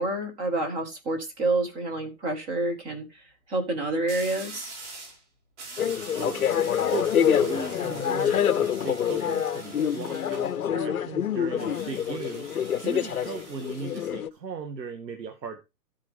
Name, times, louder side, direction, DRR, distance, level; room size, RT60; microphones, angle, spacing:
voice 1, 0.0-3.1 3.5-4.8, right 2 dB, 10° right, 1.0 m, -28 dB
sound 1, 0.9-1.3 4.1-5.2 5.6-10.6 11.6-14.1, right 3 dB, 45° right, 4.3 m, -44 dB
sound 2, 5.8-14.3, left 9 dB, 60° left, 0.9 m, -26 dB
voice 2, 6.1-6.5 6.8-15.6, right 5 dB, 80° right, 2.0 m, -37 dB
13.0 x 8.4 x 3.4 m
hypercardioid pair, 165°, 50 cm